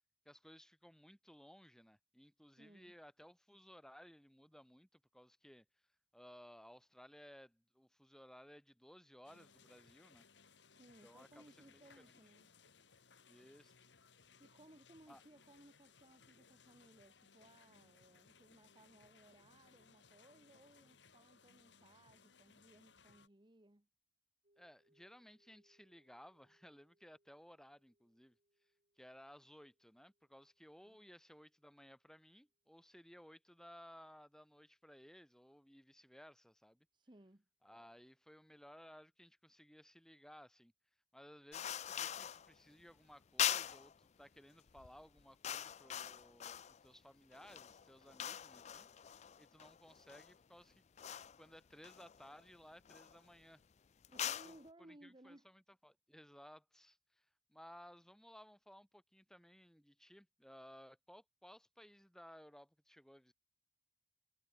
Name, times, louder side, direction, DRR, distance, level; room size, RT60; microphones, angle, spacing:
voice 1, 0.3-5.7 6.1-10.2 11.0-12.0 13.3-13.9 15.1-15.2 24.6-28.4 29.0-36.9 37.6-40.7 41.1-48.9 49.4-53.6 54.2-63.3, equal, 5° left, 3.5 m, -60 dB
voice 2, 2.6-3.0 10.8-12.5 14.4-23.9 30.8-31.0 36.9-37.5 54.1-55.5, right 1 dB, 25° right, 1.3 m, -63 dB
sound 1, 9.2-23.3, left 5 dB, 70° left, 2.0 m, -66 dB
sound 2, 24.4-33.4, right 1 dB, 40° right, 6.7 m, -82 dB
sound 3, 41.5-42.5 43.4-43.9 44.7-44.9 45.2-46.9 47.3-50.3 51.0-51.4 51.8-52.4 52.9-53.2 54.0-54.6, left 10 dB, 35° left, 0.4 m, -42 dB
head